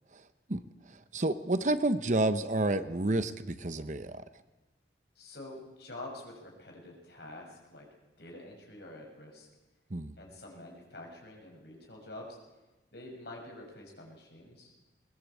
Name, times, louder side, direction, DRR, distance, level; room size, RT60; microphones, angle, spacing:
voice 1, 1.1-4.2 9.9-10.1, right 2 dB, 40° right, 12 dB, 0.9 m, -29 dB
voice 2, 5.1-7.9 8.2-9.5 10.2-12.4 12.9-14.7, left 1 dB, 60° left, 0 dB, 6.6 m, -47 dB
21.0 x 20.0 x 8.4 m, 1.1 s
head